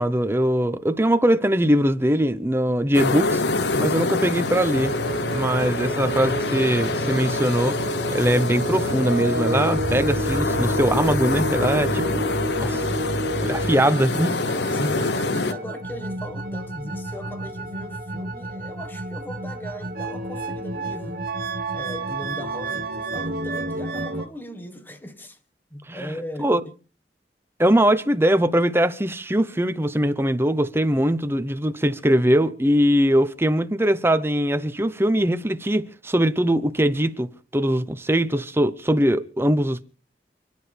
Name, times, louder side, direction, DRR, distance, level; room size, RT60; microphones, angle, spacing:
voice 1, 0.0-4.9 5.3-7.8 8.1-12.3 12.6-12.9 13.4-14.4 25.9-26.1 26.4-26.6 27.6-39.8, right 1 dB, 15° right, 0.8 m, -21 dB
sound 1, 2.9-15.5, left 3 dB, 80° left, 0.9 m, -26 dB
sound 2, 4.7-24.3, right 1 dB, 55° right, 1.3 m, -30 dB
voice 2, 14.7-21.4 21.7-25.4 25.7-26.8, equal, 10° left, 1.4 m, -38 dB
29.0 x 10.0 x 3.4 m
head